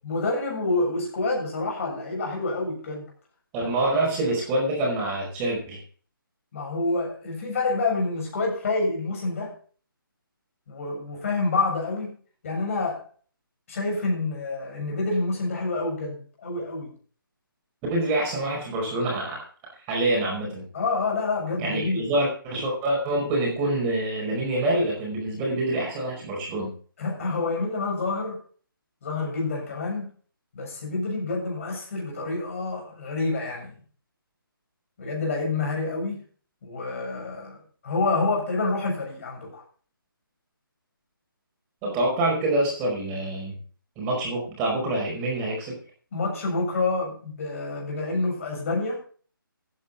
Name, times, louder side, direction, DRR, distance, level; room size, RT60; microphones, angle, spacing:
voice 1, 0.0-3.0 6.5-9.5 10.7-12.1 12.4-13.0 13.7-16.9 20.7-22.1 27.0-28.4 29.0-30.1 30.5-33.7 35.0-36.2 36.6-39.6 46.1-49.0, left 3 dB, 35° left, 0 dB, 7.0 m, -28 dB
voice 2, 3.5-5.8 17.9-19.4 19.9-20.7 21.6-26.7 41.8-43.6 44.0-45.8, right 1 dB, 15° right, -2 dB, 4.9 m, -26 dB
14.5 x 9.8 x 4.2 m, 0.42 s
hypercardioid pair, 165°, 12 cm